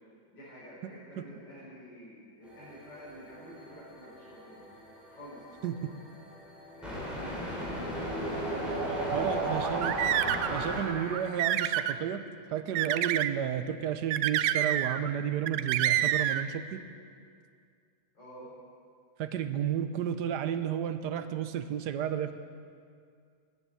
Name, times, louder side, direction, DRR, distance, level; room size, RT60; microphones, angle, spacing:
voice 1, 0.3-4.6 5.1-5.4 6.8-8.1 8.4-9.7 18.1-18.5, equal, 65° left, -8 dB, 6.0 m, -49 dB
sound 1, 2.4-11.3, equal, ahead, 4.3 m, -40 dB
sound 2, 6.9-11.7, right 3 dB, 30° right, 1.4 m, -35 dB
voice 2, 9.1-10.0 10.5-12.2 12.5-16.8 19.2-22.3, right 9 dB, 65° right, 10 dB, 1.2 m, -32 dB
sound 3, 9.6-10.6 11.1-12.0 12.8-13.3 14.1-15.1 15.5-16.4, right 12 dB, 85° right, 1.3 m, -28 dB
13.5 x 9.9 x 8.9 m, 2.2 s
omnidirectional pair, 2.1 m